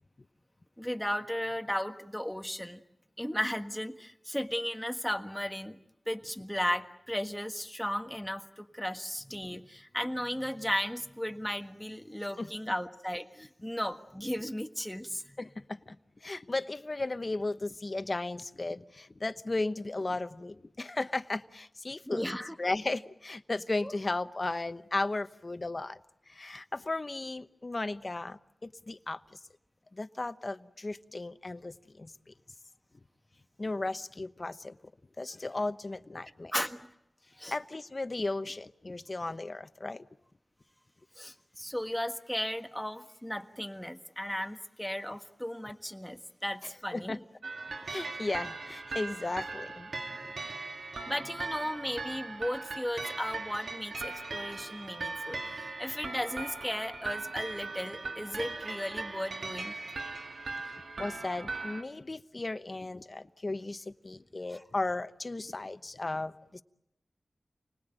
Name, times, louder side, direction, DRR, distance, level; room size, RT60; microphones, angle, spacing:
voice 1, 0.8-2.8 3.2-5.8 6.1-15.4 22.1-22.5 23.8-23.9 36.5-36.9 37.4-37.5 41.2-47.2 50.1-50.2 51.0-59.7 64.5-64.6, equal, 5° left, 1.6 m, -35 dB
voice 2, 12.4-12.7 15.4-22.3 22.6-26.0 26.3-29.4 29.9-32.1 33.6-34.8 35.2-36.5 37.5-40.0 46.6-47.2 47.8-49.9 50.2-50.3 61.0-66.6, left 2 dB, 40° left, 1.0 m, -35 dB
sound 1, 47.4-61.8, right 3 dB, 90° right, 2.3 m, -39 dB
29.5 x 19.5 x 9.0 m
wide cardioid pair, 90°, 0 cm